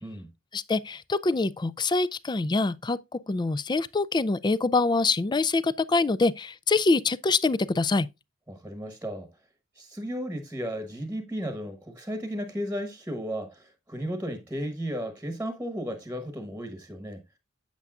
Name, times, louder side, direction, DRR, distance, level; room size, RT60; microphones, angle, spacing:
voice 1, 0.5-8.1, left 3 dB, 20° left, 0.4 m, -25 dB
voice 2, 8.5-9.3 9.8-17.2, equal, 10° right, 1.1 m, -34 dB
8.2 x 8.2 x 2.4 m
head